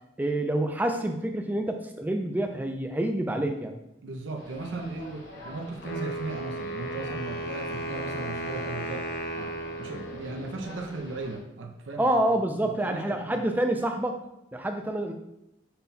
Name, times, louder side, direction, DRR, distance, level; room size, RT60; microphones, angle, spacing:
voice 1, 0.2-3.8 12.0-14.2 14.5-15.1, right 1 dB, 10° right, 4 dB, 0.3 m, -27 dB
voice 2, 4.0-12.2 12.6-13.4, right 3 dB, 75° right, 2 dB, 0.6 m, -37 dB
sound 1, 4.3-11.4, left 1 dB, 80° left, 1.6 m, -46 dB
Wind instrument woodwind instrument, 5.8-10.8, right 1 dB, 50° left, 0.5 m, -35 dB
5.4 x 2.2 x 4.1 m, 0.87 s
head